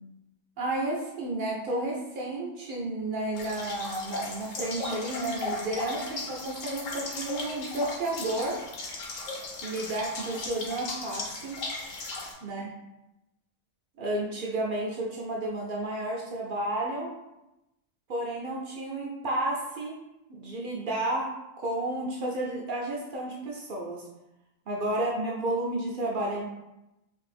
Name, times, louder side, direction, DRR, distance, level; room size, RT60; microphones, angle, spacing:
voice 1, 0.6-8.6 9.6-11.6 12.4-12.7 14.0-17.1 18.1-20.0 20.3-24.1 24.7-26.4, right 1 dB, 65° right, -2 dB, 0.5 m, -32 dB
sound 1, 3.3-12.3, left 3 dB, 75° left, 1.0 m, -37 dB
2.6 x 2.5 x 3.3 m, 0.94 s
omnidirectional pair, 1.4 m